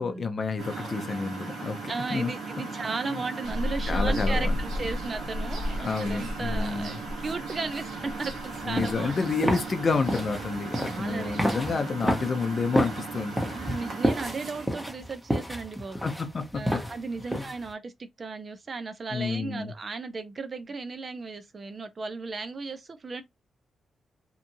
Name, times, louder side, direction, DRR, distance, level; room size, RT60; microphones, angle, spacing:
voice 1, 0.0-1.8 2.1-2.3 3.9-4.6 5.8-7.0 8.6-13.6 16.0-16.4 16.7-16.8 17.3-17.4 19.1-19.7, left 4 dB, 45° left, 0.6 m, -29 dB
Engine, 0.6-14.7, right 4 dB, 70° right, 1.0 m, -38 dB
voice 2, 1.9-9.2 10.8-11.8 13.5-16.1 16.5-23.2, right 4 dB, 40° right, 0.6 m, -36 dB
sound 1, 3.4-11.8, left 1 dB, 90° right, 0.9 m, -34 dB
sound 2, 8.5-17.7, equal, ahead, 0.8 m, -31 dB
2.9 x 2.5 x 2.6 m
cardioid pair, 85°, 0 cm